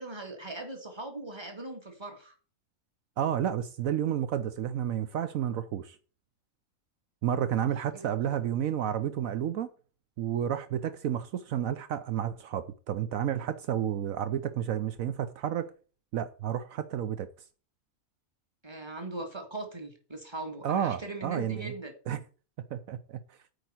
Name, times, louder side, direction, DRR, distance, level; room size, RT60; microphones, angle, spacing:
voice 1, 0.0-2.3 7.9-8.1 18.6-21.9, right 2 dB, 20° right, 2.0 m, -40 dB
voice 2, 3.2-6.0 7.2-9.7 10.2-15.7 16.1-17.3 20.6-21.7 22.1-22.2 22.7-23.4, right 10 dB, 75° right, 1.1 m, -31 dB
8.9 x 4.9 x 7.7 m
omnidirectional pair, 1.4 m